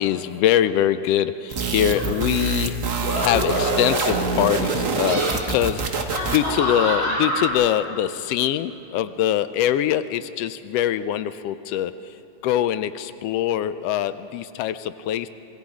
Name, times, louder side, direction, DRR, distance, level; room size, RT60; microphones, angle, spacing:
voice 1, 0.0-2.8 3.2-12.2 12.4-15.3, left 11 dB, 90° left, 13 dB, 1.3 m, -23 dB
sound 1, 1.5-6.6, right 4 dB, 85° right, 0.7 m, -26 dB
sound 2, 1.9-2.2 3.0-4.4 4.9-5.3 6.1-7.5, equal, 65° left, 7.3 m, -26 dB
26.5 x 21.5 x 4.9 m, 3.0 s
omnidirectional pair, 3.4 m